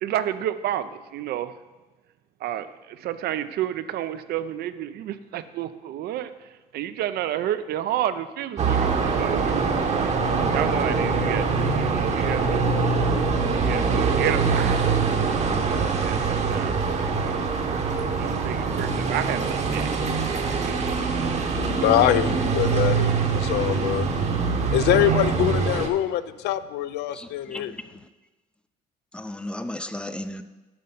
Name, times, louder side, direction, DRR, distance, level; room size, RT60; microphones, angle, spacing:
voice 1, 0.0-1.5 2.4-10.1 10.5-12.7 13.5-15.0 15.6-17.4 18.2-20.2 20.6-21.5, right 11 dB, 70° right, 12 dB, 0.5 m, -31 dB
sound 1, 8.6-25.9, right 4 dB, 40° right, 1.0 m, -24 dB
voice 2, 21.6-27.7, left 12 dB, 80° left, 14 dB, 0.4 m, -24 dB
voice 3, 27.1-28.0 29.1-30.4, left 1 dB, 5° left, 11 dB, 0.4 m, -35 dB
7.7 x 5.4 x 5.6 m, 1.2 s
cardioid pair, 110°, 17 cm